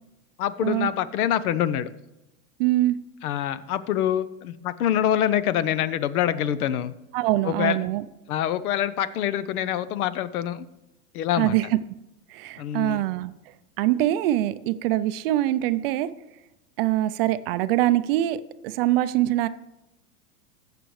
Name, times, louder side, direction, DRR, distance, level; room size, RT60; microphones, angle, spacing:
voice 1, 0.4-1.9 3.2-6.9 7.4-7.8 8.3-10.6 11.1-11.5 12.6-13.0, left 10 dB, 75° left, 15 dB, 0.8 m, -25 dB
voice 2, 2.6-3.0 7.1-8.0 11.4-11.8 12.3-13.3 13.8-16.1 16.8-19.5, right 15 dB, 45° right, 13 dB, 0.4 m, -23 dB
15.5 x 6.9 x 3.2 m, 0.93 s
supercardioid pair, 140°, 44 cm